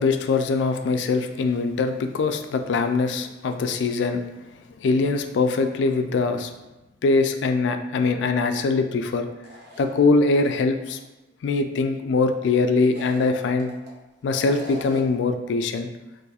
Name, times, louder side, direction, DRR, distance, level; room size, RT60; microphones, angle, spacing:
voice 1, 0.0-4.2 4.7-6.5 7.0-9.3 9.8-11.0 11.4-13.7 14.2-15.9, left 3 dB, 80° left, 7 dB, 0.3 m, -22 dB
sound 1, 9.4-10.5 10.9-11.0 12.8-13.9 14.3-15.2, right 1 dB, 65° right, 0.6 m, -41 dB
2.6 x 2.3 x 4.1 m, 1.0 s
head